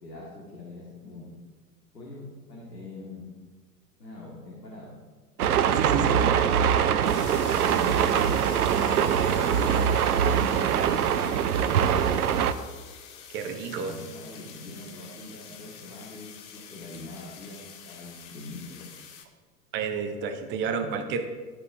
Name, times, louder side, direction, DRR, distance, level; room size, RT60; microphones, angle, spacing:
voice 1, 0.0-1.3 1.9-3.3 4.0-4.9 5.7-6.4 7.5-8.3 8.8-9.9 10.3-12.0 13.5-18.8, left 2 dB, 80° left, -4 dB, 1.8 m, -42 dB
sound 1, 5.4-12.5, right 8 dB, 65° right, 0.6 m, -23 dB
voice 2, 5.8-6.2 13.3-13.9 19.7-21.2, right 6 dB, 25° right, 6 dB, 0.7 m, -30 dB
sound 2, 7.0-19.2, left 7 dB, 20° left, 0.4 m, -46 dB
12.5 x 5.2 x 2.6 m, 1.4 s
figure-of-eight pair, 95°, 48 cm